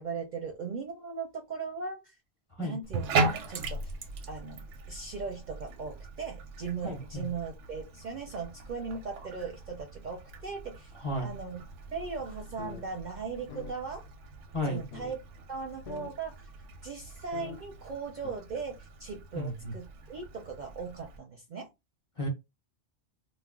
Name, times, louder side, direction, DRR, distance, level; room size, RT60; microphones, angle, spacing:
voice 1, 0.0-2.2 2.6-3.1 3.5-3.9 4.3-4.6 4.9-10.9 11.2-11.6 11.9-14.0 14.6-15.2 15.5-16.3 16.8-21.7, right 5 dB, 55° right, 0.6 m, -38 dB
Bathtub (filling or washing), 2.8-21.2, right 3 dB, 85° right, 0.9 m, -39 dB
voice 2, 6.8-7.3 11.0-11.3 14.5-14.8 19.3-19.7 22.2-22.3, equal, 35° left, 0.7 m, -33 dB
sound 1, 12.6-12.8 13.1-13.2 13.5-13.7 14.4-14.5 14.9-15.2 15.5-15.6 15.9-16.1 16.7-16.8 17.3-17.6 18.2-18.3, left 7 dB, 70° left, 0.8 m, -42 dB
2.4 x 2.1 x 3.5 m
omnidirectional pair, 1.2 m